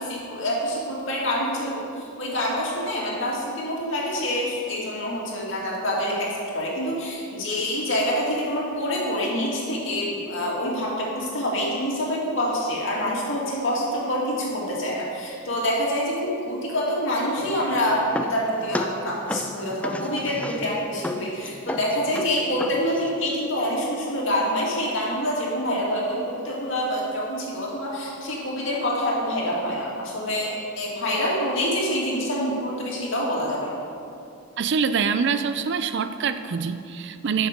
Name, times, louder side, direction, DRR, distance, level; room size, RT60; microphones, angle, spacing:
voice 1, 0.0-33.8, equal, 60° left, -4 dB, 2.4 m, -26 dB
sound 1, 17.4-23.2, left 1 dB, 5° left, 0.3 m, -33 dB
voice 2, 34.6-37.5, right 6 dB, 55° right, 10 dB, 0.4 m, -25 dB
12.5 x 6.5 x 5.2 m, 2.6 s
head